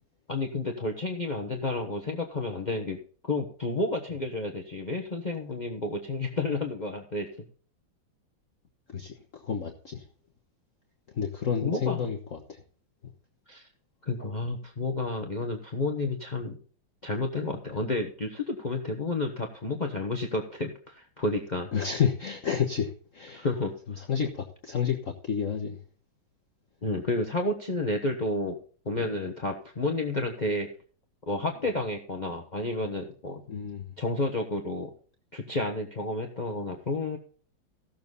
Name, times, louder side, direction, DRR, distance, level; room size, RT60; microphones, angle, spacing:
voice 1, 0.3-3.0 3.2-7.3 11.6-12.0 13.5-13.7 14.0-16.6 17.0-21.7 23.3-23.7 26.8-28.6 28.8-30.7 31.3-33.4 34.0-34.9 35.3-37.2, left 2 dB, 25° left, 4 dB, 1.1 m, -31 dB
voice 2, 8.9-10.1 11.1-12.6 21.7-23.5 24.0-25.8 28.9-29.1 33.5-33.9, left 7 dB, 45° left, 1 dB, 1.4 m, -30 dB
16.0 x 7.2 x 4.0 m, 0.43 s
omnidirectional pair, 2.1 m